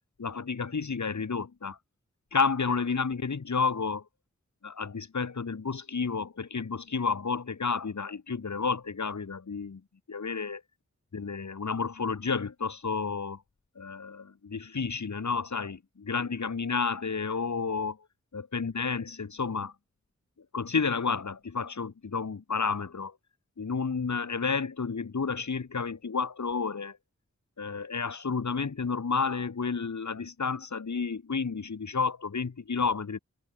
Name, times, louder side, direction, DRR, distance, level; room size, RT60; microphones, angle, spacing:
voice 1, 0.2-1.8 2.3-4.1 4.6-9.8 10.1-10.6 11.1-13.4 13.8-18.0 18.3-19.7 20.5-23.2 23.6-27.0 27.6-33.2, left 5 dB, 75° left, 2.4 m, -31 dB
wide cardioid pair, 50°, 29 cm